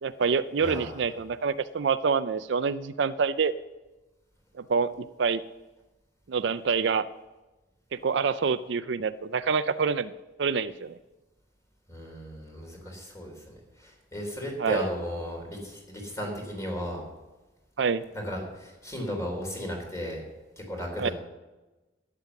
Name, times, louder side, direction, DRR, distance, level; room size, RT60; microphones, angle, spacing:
voice 1, 0.0-3.5 4.7-5.4 6.3-7.1 7.9-10.1 10.4-11.0 14.6-14.8 17.8-18.0 21.0-21.1, right 5 dB, 70° right, 13 dB, 0.4 m, -26 dB
voice 2, 0.6-1.0 11.9-17.0 18.1-20.2 20.6-21.1, equal, 15° left, 1 dB, 3.6 m, -35 dB
12.0 x 9.9 x 7.1 m, 1.1 s
head